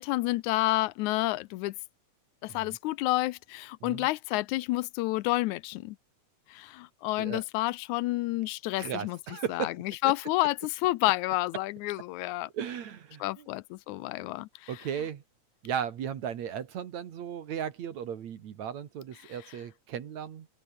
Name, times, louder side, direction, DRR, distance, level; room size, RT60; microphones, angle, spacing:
voice 1, 0.0-1.8 2.4-6.0 6.5-12.5 13.2-14.8 19.2-19.5, left 18 dB, 75° left, 1.9 m, -30 dB
voice 2, 8.7-9.8 12.5-13.4 14.7-15.2 15.6-20.5, right 8 dB, 65° right, 2.9 m, -36 dB
open air
omnidirectional pair, 3.7 m